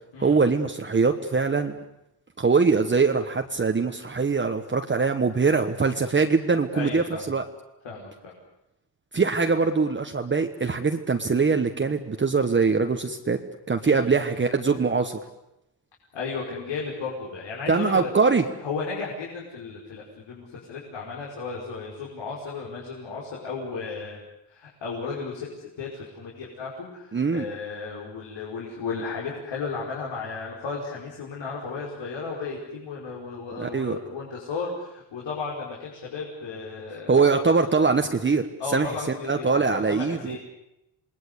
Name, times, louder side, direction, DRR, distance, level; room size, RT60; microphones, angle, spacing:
voice 1, 0.2-1.8 2.4-7.4 9.1-13.4 13.7-15.2 17.7-18.4 27.1-27.5 33.6-34.0 37.1-38.5 38.7-40.4, right 4 dB, 25° right, 5 dB, 1.3 m, -22 dB
voice 2, 6.7-7.3 7.8-8.3 13.8-14.2 16.1-18.1 18.6-24.2 24.5-25.5 25.8-37.6 38.6-40.4, left 4 dB, 85° left, -3 dB, 5.5 m, -34 dB
27.5 x 20.5 x 8.3 m, 0.86 s
wide cardioid pair, 135°, 44 cm